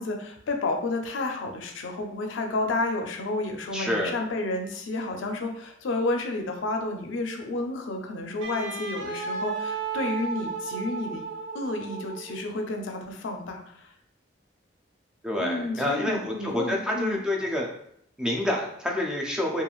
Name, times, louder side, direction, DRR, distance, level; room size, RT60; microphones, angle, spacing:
voice 1, 0.0-11.2 11.5-13.6 15.4-17.2, left 2 dB, 85° left, 3 dB, 0.4 m, -31 dB
voice 2, 3.7-4.2 15.2-17.7 18.2-19.6, left 1 dB, 5° right, -1 dB, 0.3 m, -28 dB
Wind instrument woodwind instrument, 8.4-12.5, right 5 dB, 85° right, 0.6 m, -34 dB
3.0 x 2.4 x 2.3 m, 0.70 s
head